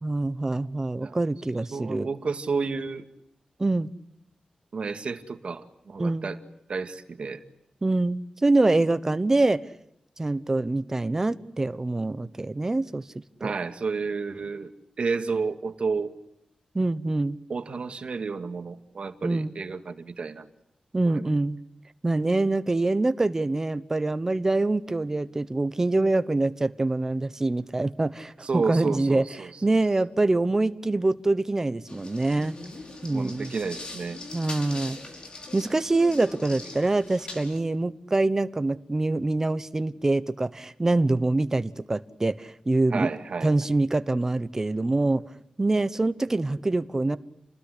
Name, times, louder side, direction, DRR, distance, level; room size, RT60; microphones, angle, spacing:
voice 1, 0.0-2.1 3.6-3.9 6.0-6.3 7.8-9.6 10.2-13.0 13.4-13.5 16.7-17.4 19.2-19.5 20.9-21.6 22.0-32.6 33.0-33.5 34.3-35.0 35.5-43.1 43.4-45.2 45.6-47.2, right 2 dB, 20° right, 13 dB, 1.0 m, -25 dB
voice 2, 1.7-3.0 4.7-6.4 6.7-7.4 13.4-14.7 15.0-16.1 17.5-20.5 21.1-21.3 28.4-29.8 33.1-34.2 42.9-43.5, right 4 dB, 55° right, 8 dB, 1.9 m, -31 dB
sound 1, 31.9-37.6, left 2 dB, 45° left, 5.3 m, -41 dB
29.5 x 20.0 x 9.9 m, 0.79 s
wide cardioid pair, 180°, 2 cm